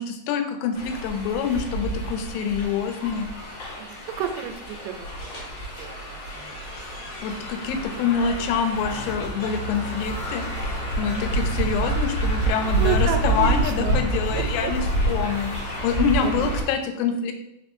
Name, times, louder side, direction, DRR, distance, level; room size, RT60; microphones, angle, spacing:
voice 1, 0.0-3.3 7.2-10.4 11.0-14.8 15.1-17.3, left 6 dB, 85° left, 6 dB, 2.5 m, -26 dB
sound 1, 0.7-16.6, right 1 dB, 50° left, 1.7 m, -28 dB
voice 2, 3.8-6.6 11.1-11.4 12.8-14.0 14.3-14.7 15.0-15.5 16.2-16.5, right 9 dB, 90° right, 6 dB, 2.6 m, -32 dB
sound 2, 4.9-9.9, equal, 65° left, 2.0 m, -44 dB
sound 3, 8.8-16.7, right 1 dB, 55° right, 1.1 m, -34 dB
5.6 x 3.5 x 2.5 m, 0.84 s
omnidirectional pair, 4.5 m